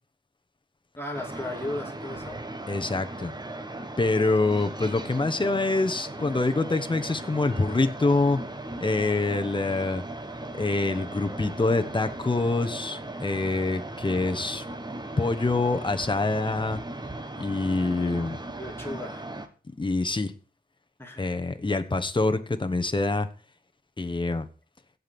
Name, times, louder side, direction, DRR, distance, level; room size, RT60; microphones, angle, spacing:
voice 1, 1.0-2.4 18.6-19.3 21.0-21.4, left 1 dB, 15° left, 1 dB, 2.4 m, -35 dB
sound 1, 1.1-19.5, right 2 dB, 25° right, 1.4 m, -38 dB
voice 2, 2.7-3.3 4.0-8.4 8.8-10.0 10.5-14.6 15.2-16.8 17.4-18.4 19.8-20.3 21.2-23.3 24.0-24.5, left 3 dB, 30° left, 8 dB, 1.3 m, -25 dB
16.5 x 5.5 x 6.1 m, 0.37 s
wide cardioid pair, 105°, 17 cm